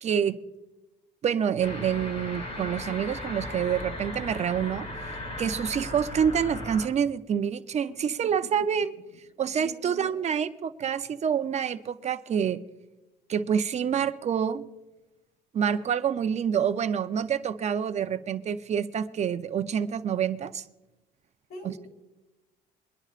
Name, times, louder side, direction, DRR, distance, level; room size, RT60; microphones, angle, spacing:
voice 1, 0.0-0.4 1.2-4.9 5.4-8.9 9.4-12.6 13.3-14.6 15.5-20.6 21.6-21.7, right 8 dB, 40° right, 11 dB, 0.6 m, -27 dB
sound 1, 1.6-6.9, left 1 dB, 40° left, 2.8 m, -37 dB
voice 2, 9.6-10.1 21.5-21.9, left 1 dB, 75° left, 2 dB, 4.4 m, -43 dB
23.0 x 11.0 x 2.5 m, 1.0 s
cardioid pair, 110°, 17 cm